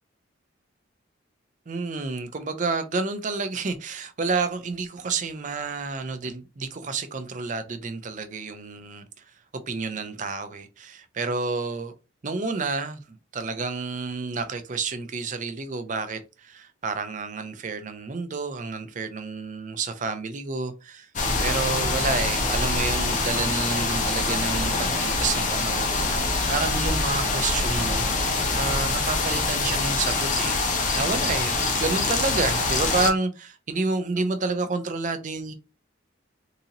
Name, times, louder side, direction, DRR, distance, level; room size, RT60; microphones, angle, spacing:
voice 1, 1.7-9.1 9.7-11.9 12.2-21.1 21.4-28.1 28.6-30.5 30.9-35.5, right 4 dB, 40° right, 0.5 m, -29 dB
sound 1, 21.2-33.1, left 3 dB, 40° left, 0.8 m, -25 dB
3.8 x 2.7 x 2.8 m
head